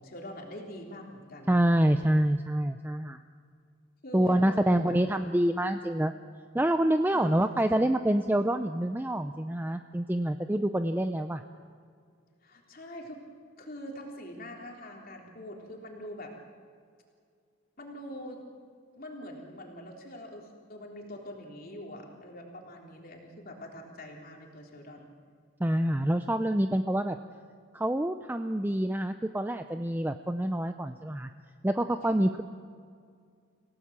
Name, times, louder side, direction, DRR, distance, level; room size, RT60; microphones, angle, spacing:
voice 1, 0.0-1.6 4.0-4.9 5.2-5.3 7.1-7.7 12.4-13.2 13.6-16.3 17.8-18.4 18.9-25.1 32.0-32.3, left 1 dB, 45° left, 0 dB, 3.5 m, -44 dB
voice 2, 1.5-3.2 4.1-6.1 6.5-11.4 25.6-27.2 27.7-31.3 31.6-32.4, right 1 dB, 10° right, 8 dB, 0.5 m, -26 dB
28.0 x 17.0 x 7.4 m, 2.2 s
head